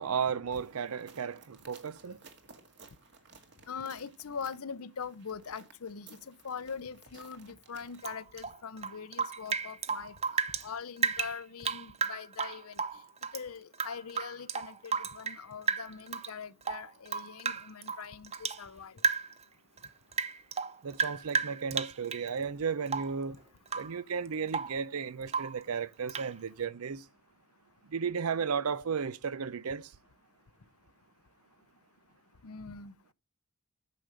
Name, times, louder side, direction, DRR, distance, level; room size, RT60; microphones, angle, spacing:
voice 1, 0.0-2.2 20.8-23.3 23.7-27.0 27.9-29.9, right 6 dB, 85° right, 0.6 m, -34 dB
sound 1, 0.5-8.1, right 5 dB, 55° right, 1.8 m, -57 dB
voice 2, 3.7-10.1 10.6-12.8 13.3-19.0 32.4-32.9, left 6 dB, 80° left, 0.7 m, -42 dB
Rain / Drip, 8.0-10.7 11.0-13.4 13.7-15.4 15.7-16.3 16.6-18.6 19.0-19.4 19.8-22.3 22.9-23.2 23.7-24.0 24.3-24.8 25.3-25.6 26.1-26.3, right 6 dB, 30° right, 0.6 m, -33 dB
9.3 x 6.9 x 5.1 m
head